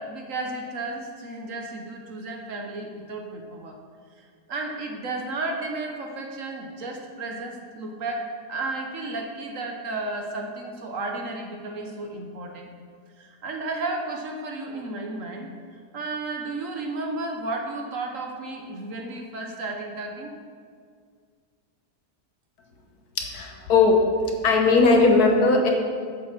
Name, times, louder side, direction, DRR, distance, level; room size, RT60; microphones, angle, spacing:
voice 1, 0.0-3.8 4.5-12.7 13.2-15.5 15.9-20.3, right 2 dB, 55° right, 2 dB, 1.2 m, -33 dB
voice 2, 23.2-24.0 24.4-25.7, left 3 dB, 70° left, 2 dB, 1.5 m, -18 dB
7.6 x 7.0 x 5.9 m, 2.1 s
omnidirectional pair, 1.8 m